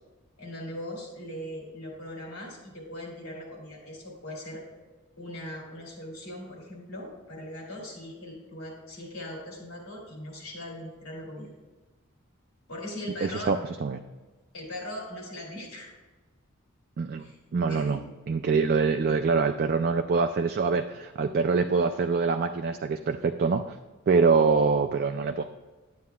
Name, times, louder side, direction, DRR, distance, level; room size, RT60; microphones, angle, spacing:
voice 1, 0.4-4.6 5.2-11.5 12.7-13.5 14.5-15.9 17.2-17.4 17.7-18.0, left 1 dB, 90° left, -1 dB, 2.9 m, -40 dB
voice 2, 13.2-14.0 17.0-17.3 17.5-23.8 24.1-25.4, right 4 dB, 45° right, 6 dB, 0.3 m, -25 dB
11.5 x 8.5 x 2.3 m, 1.2 s
head